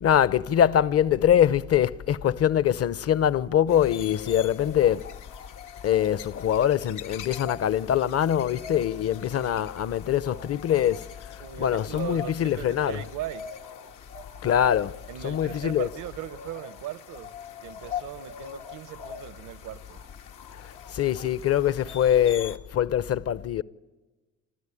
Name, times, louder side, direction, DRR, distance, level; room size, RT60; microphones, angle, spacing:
voice 1, 0.0-5.1 5.8-11.1 11.6-13.0 14.4-15.0 15.2-15.9 20.9-23.6, left 10 dB, 50° left, 0.8 m, -23 dB
sound 1, 3.7-22.6, left 8 dB, 90° left, 1.4 m, -42 dB
voice 2, 11.4-13.6 15.1-17.3 17.6-20.0, right 13 dB, 85° right, 0.8 m, -39 dB
27.5 x 13.0 x 9.9 m
cardioid pair, 90°, 30 cm